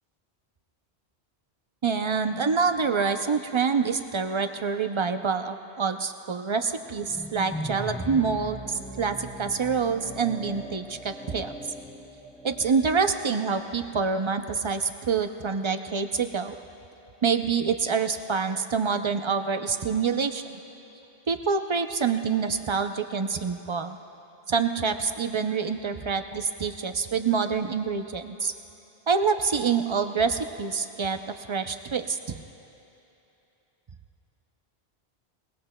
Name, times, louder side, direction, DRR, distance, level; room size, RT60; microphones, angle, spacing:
voice 1, 1.8-11.5 12.4-16.6 17.2-20.4 21.3-24.0 24.5-28.5 29.1-32.4, right 5 dB, 45° right, 8 dB, 0.3 m, -26 dB
sound 1, 6.8-13.2, equal, 5° left, 0.7 m, -39 dB
22.0 x 20.0 x 2.2 m, 2.9 s
omnidirectional pair, 1.1 m